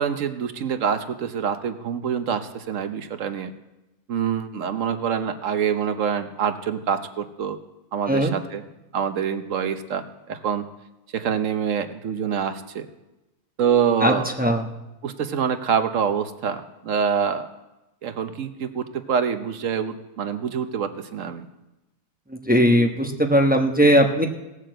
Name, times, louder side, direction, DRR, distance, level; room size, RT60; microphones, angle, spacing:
voice 1, 0.0-3.5 4.1-7.6 7.9-8.6 8.9-10.6 11.1-12.9 13.6-14.3 15.0-17.5 18.0-21.5, right 7 dB, 70° right, 9 dB, 1.2 m, -25 dB
voice 2, 22.5-24.3, equal, 5° right, 3 dB, 0.9 m, -18 dB
17.0 x 6.6 x 7.7 m, 0.99 s
omnidirectional pair, 1.4 m